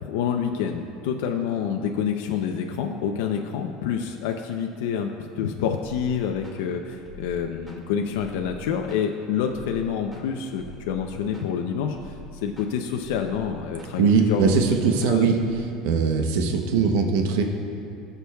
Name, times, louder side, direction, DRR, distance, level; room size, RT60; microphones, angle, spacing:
voice 1, 0.0-5.1 5.4-12.1 12.4-14.7 15.1-15.3, left 7 dB, 85° left, 3 dB, 0.6 m, -27 dB
sound 1, 5.8-15.6, left 2 dB, 15° right, 2.0 m, -45 dB
voice 2, 14.0-15.4 15.8-17.4, right 5 dB, 85° right, 3 dB, 0.8 m, -20 dB
19.5 x 6.8 x 2.3 m, 2.8 s
cardioid pair, 150°, 0 cm